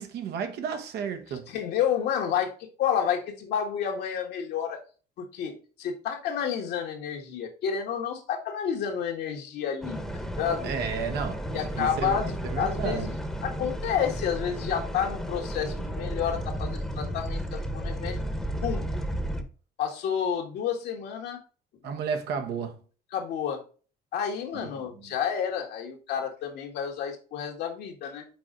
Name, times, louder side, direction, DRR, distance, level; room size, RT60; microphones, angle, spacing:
voice 1, 0.0-1.5 10.6-13.1 21.8-22.8 24.7-24.8, right 6 dB, 75° right, 1.2 m, -32 dB
voice 2, 1.5-4.8 5.2-10.7 11.5-18.2 18.6-18.9 19.8-21.4 21.8-21.9 23.1-23.6 24.1-28.3, left 8 dB, 75° left, 1.7 m, -30 dB
sound 1, 9.8-19.4, equal, ahead, 1.0 m, -33 dB
6.0 x 4.4 x 3.8 m
cardioid pair, 110°, 17 cm